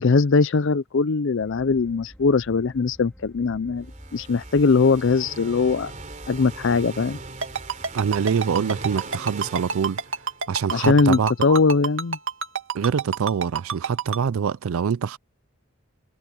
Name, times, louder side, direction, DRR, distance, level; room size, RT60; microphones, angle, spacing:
voice 1, 0.0-3.9 4.1-5.9 6.3-7.2 10.7-12.2, left 4 dB, 65° left, 0.5 m, -20 dB
sound 1, 1.4-8.1, equal, 5° left, 4.2 m, -47 dB
sound 2, 3.8-10.7, right 3 dB, 35° right, 3.3 m, -40 dB
Ringtone, 7.4-14.2, right 5 dB, 65° right, 2.0 m, -27 dB
voice 2, 7.9-10.0 10.5-11.6 12.7-15.2, right 6 dB, 85° right, 0.4 m, -25 dB
head